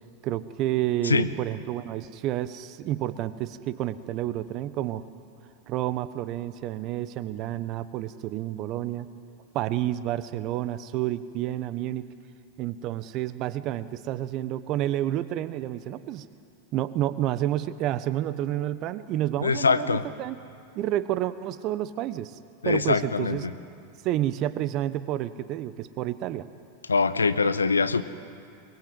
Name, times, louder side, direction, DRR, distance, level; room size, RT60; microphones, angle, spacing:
voice 1, 0.2-5.0 5.7-9.1 9.5-12.1 12.6-16.3 16.7-20.4 20.7-22.4 22.6-23.5 24.0-26.5, right 13 dB, 45° right, 14 dB, 1.1 m, -29 dB
voice 2, 19.4-20.0 22.6-23.4 26.9-28.0, left 4 dB, 85° left, 14 dB, 0.8 m, -23 dB
23.0 x 21.5 x 7.9 m, 2.6 s
figure-of-eight pair, 90°, 0 cm